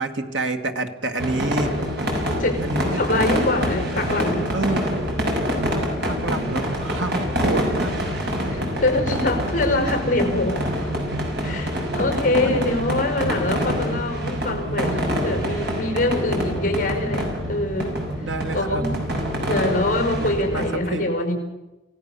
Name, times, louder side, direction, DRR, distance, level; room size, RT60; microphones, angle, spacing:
voice 1, 0.0-1.7 2.6-3.3 4.5-5.0 5.7-8.4 11.5-11.6 12.4-12.7 18.2-18.9 20.2-20.6 20.9-21.1, right 2 dB, 85° right, 6 dB, 2.0 m, -29 dB
sound 1, 1.2-20.7, equal, 65° right, 6.0 m, -26 dB
voice 2, 2.4-4.5 6.1-6.5 8.5-11.1 11.4-18.0 18.5-18.9 19.5-21.3, left 2 dB, 45° left, 5 dB, 5.0 m, -24 dB
27.5 x 17.0 x 6.9 m, 1.0 s
head